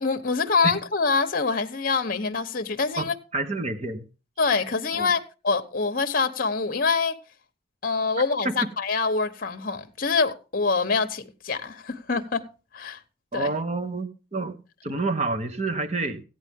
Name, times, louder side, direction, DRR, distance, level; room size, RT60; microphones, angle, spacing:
voice 1, 0.0-3.1 4.4-7.2 7.8-12.4 12.7-13.0 13.3-13.5, left 4 dB, 45° left, 1.0 m, -25 dB
voice 2, 3.3-4.0 4.9-5.1 8.4-8.5 13.3-16.2, right 3 dB, 35° right, 1.3 m, -28 dB
16.0 x 9.2 x 3.6 m
head